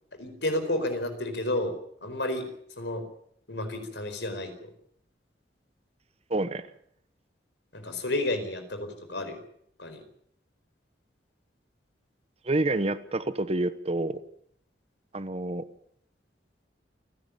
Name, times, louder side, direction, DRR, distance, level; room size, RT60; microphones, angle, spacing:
voice 1, 0.2-1.7 2.0-2.5 2.8-3.0 3.5-4.7 7.7-9.4 9.8-10.0, left 1 dB, 80° left, 8 dB, 4.6 m, -31 dB
voice 2, 6.3-6.7 12.4-14.2 15.1-15.6, right 2 dB, 35° right, 13 dB, 1.1 m, -28 dB
28.5 x 11.0 x 8.6 m, 0.69 s
head